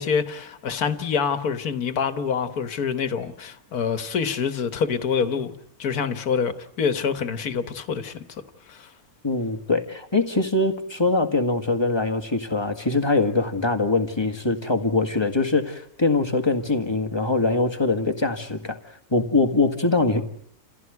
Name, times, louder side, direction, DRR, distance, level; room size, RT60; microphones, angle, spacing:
voice 1, 0.0-5.5 5.8-8.2 8.7-8.9, left 6 dB, 80° left, 1.8 m, -26 dB
voice 2, 9.2-18.8 19.1-20.2, left 3 dB, 15° left, 1.9 m, -23 dB
29.5 x 16.0 x 9.5 m
omnidirectional pair, 1.6 m